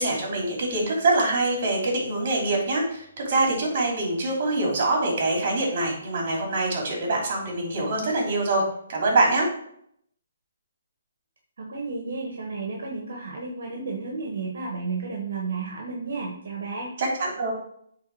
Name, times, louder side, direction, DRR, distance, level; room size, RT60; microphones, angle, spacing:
voice 1, 0.0-8.6 8.9-9.5 17.0-17.5, right 2 dB, 40° right, -1 dB, 3.0 m, -24 dB
voice 2, 11.6-16.9, right 4 dB, 60° right, 0 dB, 1.5 m, -32 dB
8.5 x 3.6 x 4.8 m, 0.70 s
hypercardioid pair, 165°, 0 cm